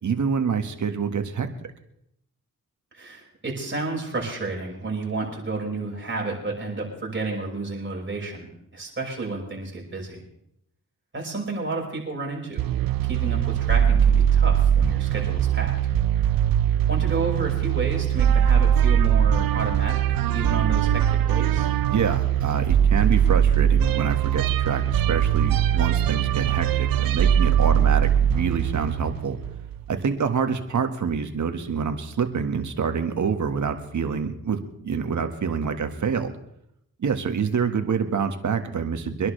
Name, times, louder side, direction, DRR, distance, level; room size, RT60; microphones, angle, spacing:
voice 1, 0.0-1.5 21.9-29.4 29.9-36.3 37.0-39.3, right 6 dB, 55° right, 7 dB, 1.7 m, -26 dB
voice 2, 2.9-10.2 11.1-12.7 13.0-15.7 16.9-21.7, right 3 dB, 35° right, -2 dB, 5.7 m, -31 dB
sound 1, 12.6-29.9, right 9 dB, 75° right, 0.7 m, -21 dB
24.5 x 11.0 x 3.4 m, 0.76 s
cardioid pair, 75°, 34 cm